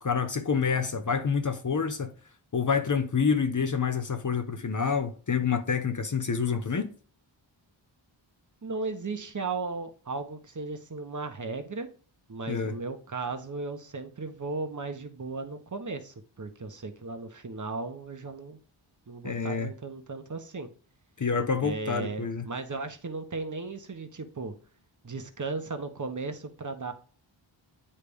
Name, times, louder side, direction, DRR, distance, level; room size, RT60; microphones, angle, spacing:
voice 1, 0.0-2.1 2.5-6.9 12.5-12.8 19.2-19.7 21.2-22.5, left 6 dB, 40° left, 0.8 m, -27 dB
voice 2, 8.6-11.9 12.3-18.6 19.1-20.7 21.6-24.5 25.0-26.9, right 3 dB, 40° right, 0.9 m, -36 dB
9.8 x 3.3 x 3.4 m
wide cardioid pair, 90°, 48 cm